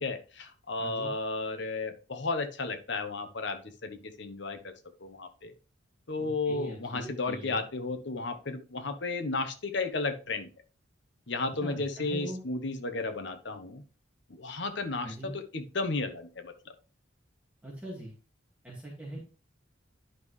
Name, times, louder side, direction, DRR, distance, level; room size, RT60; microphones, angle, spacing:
voice 1, 0.0-4.7 5.0-5.5 6.1-10.5 11.3-13.8 14.3-16.7, left 3 dB, 60° left, 8 dB, 1.0 m, -33 dB
voice 2, 0.8-1.1 6.2-7.6 11.4-12.4 15.0-15.3 17.6-18.1 18.6-19.2, right 1 dB, 5° right, -5 dB, 2.0 m, -41 dB
10.5 x 5.5 x 3.2 m, 0.36 s
head